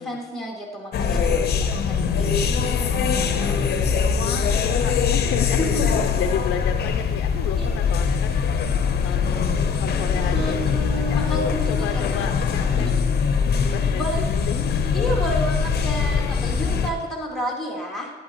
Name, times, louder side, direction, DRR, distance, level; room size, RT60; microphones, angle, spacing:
voice 1, 0.0-3.6 5.6-6.1 7.5-8.0 10.2-12.2 12.8-13.1 13.9-14.3 14.9-18.1, equal, ahead, -2 dB, 2.1 m, -31 dB
sound 1, 0.9-16.9, left 6 dB, 55° left, 0.8 m, -22 dB
voice 2, 2.6-3.2 4.1-12.9 13.7-14.8, left 8 dB, 80° left, 5 dB, 0.5 m, -33 dB
10.5 x 9.1 x 3.0 m, 1.3 s
cardioid pair, 90°, 20 cm